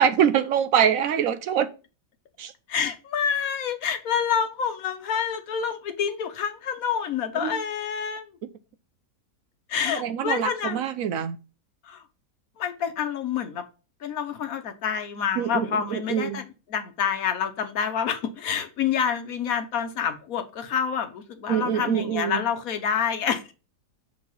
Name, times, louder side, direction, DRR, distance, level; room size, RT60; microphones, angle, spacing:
voice 1, 0.0-1.7 2.4-2.5 7.4-7.6 10.0-11.4 15.4-16.4 21.5-22.4, right 8 dB, 70° right, 0.8 m, -24 dB
voice 2, 2.7-8.4 9.7-10.8 11.8-12.0 12.6-13.6 14.0-16.4 16.7-23.5, left 7 dB, 60° left, 1.2 m, -28 dB
6.4 x 3.6 x 5.6 m
omnidirectional pair, 1.8 m